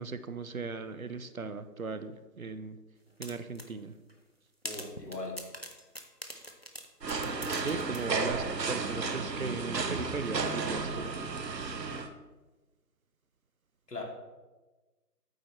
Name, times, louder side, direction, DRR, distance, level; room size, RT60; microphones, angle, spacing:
voice 1, 0.0-2.1 2.4-2.8 3.2-3.9 7.5-11.1, right 4 dB, 60° right, 12 dB, 0.6 m, -37 dB
sound 1, 3.2-3.7 4.1-4.2 4.6-8.1, right 1 dB, 40° left, 0.6 m, -43 dB
voice 2, 4.6-5.4 13.9-14.0, left 3 dB, 75° left, 0 dB, 2.4 m, -39 dB
sound 2, 7.0-12.1, right 4 dB, 85° right, 1.0 m, -33 dB
8.8 x 7.9 x 3.0 m, 1.2 s
figure-of-eight pair, 175°, 48 cm